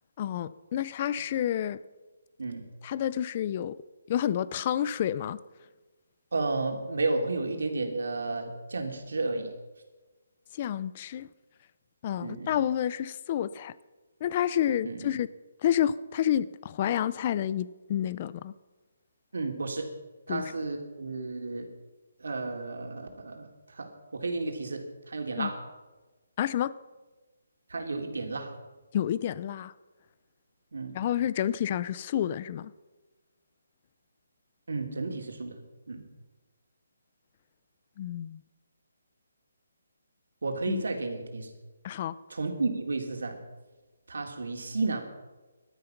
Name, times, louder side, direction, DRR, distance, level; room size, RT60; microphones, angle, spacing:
voice 1, 0.2-1.8 2.8-3.8 4.1-5.4 10.5-11.3 12.0-13.7 14.2-15.3 15.6-18.5 20.3-20.5 25.4-25.5 26.4-26.7 28.9-29.7 30.9-32.7 38.0-38.4 40.7-40.8 41.8-42.1, left 10 dB, 25° left, 18 dB, 0.5 m, -29 dB
voice 2, 6.3-9.5 12.2-12.5 14.8-15.0 19.3-19.9 20.3-21.7 22.2-23.5 23.8-25.6 27.7-28.5 30.7-30.9 34.7-35.6 35.9-36.1 40.4-41.5 42.3-43.4 44.1-45.0, right 3 dB, 80° right, 3 dB, 3.2 m, -32 dB
17.5 x 12.5 x 5.9 m, 1.2 s
hypercardioid pair, 170°, 0 cm